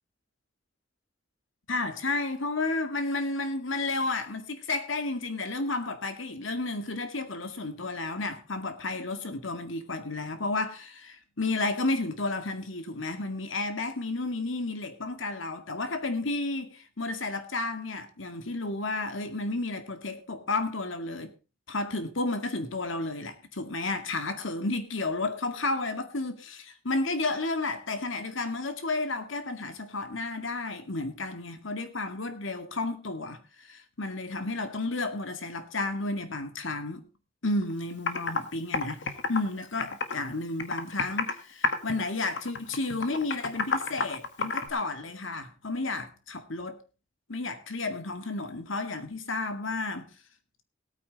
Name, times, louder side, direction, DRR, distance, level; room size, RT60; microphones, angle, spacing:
voice 1, 1.7-21.3 21.7-37.0 37.4-46.8 47.3-50.1, left 2 dB, 85° left, 2.1 m, -32 dB
Computer keyboard, 37.6-37.7 38.1-38.4 38.7-40.3 40.6-41.4 41.6-42.0 42.4-44.7, left 4 dB, 65° left, 1.6 m, -29 dB
17.5 x 9.1 x 4.1 m
head